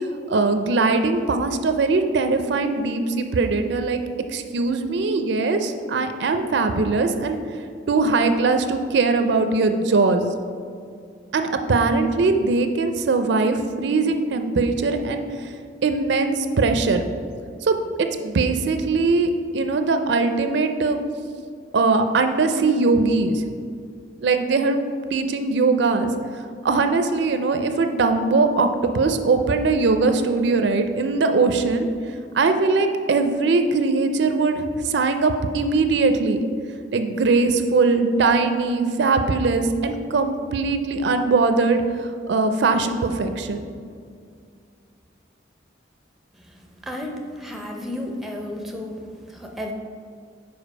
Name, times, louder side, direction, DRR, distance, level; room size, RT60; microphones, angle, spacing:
voice 1, 0.3-4.0 4.3-7.4 7.9-10.3 11.3-15.5 15.8-17.0 17.6-21.0 21.7-23.4 24.2-24.8 25.1-26.1 26.6-31.9 32.3-36.4 36.9-43.7, right 3 dB, 65° right, 7 dB, 0.4 m, -21 dB
voice 2, 46.5-49.7, left 1 dB, ahead, 2 dB, 0.5 m, -33 dB
5.1 x 4.6 x 5.4 m, 2.2 s
head